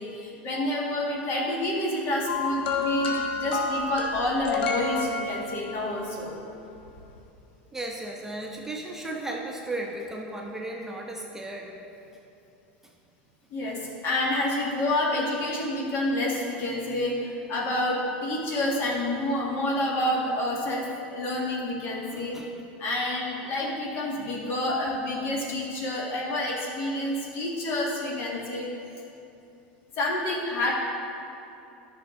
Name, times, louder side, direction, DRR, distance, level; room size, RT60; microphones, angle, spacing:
voice 1, 0.0-6.3 13.5-22.4 22.8-28.7 30.0-30.7, left 1 dB, 45° left, -3 dB, 1.9 m, -28 dB
sound 1, 2.3-5.8 6.9-7.0, left 4 dB, 80° left, 1.1 m, -29 dB
voice 2, 7.7-11.7 22.1-22.5, right 2 dB, 5° right, -1 dB, 0.9 m, -35 dB
10.5 x 6.1 x 3.9 m, 2.8 s
hypercardioid pair, 95°, 6 cm